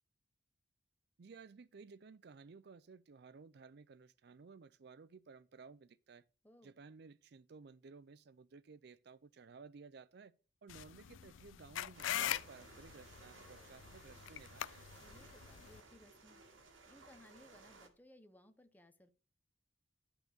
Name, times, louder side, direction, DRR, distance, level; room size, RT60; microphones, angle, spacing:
voice 1, 1.2-6.2 6.6-10.3 10.6-14.9, right 4 dB, 55° right, 0.4 m, -57 dB
sound 1, 10.7-15.8, left 11 dB, 80° left, 0.4 m, -42 dB
sound 2, 11.9-17.9, right 3 dB, 90° right, 2.0 m, -59 dB
voice 2, 15.0-16.4 16.9-19.1, left 1 dB, 10° left, 0.9 m, -62 dB
12.0 x 4.4 x 6.5 m
head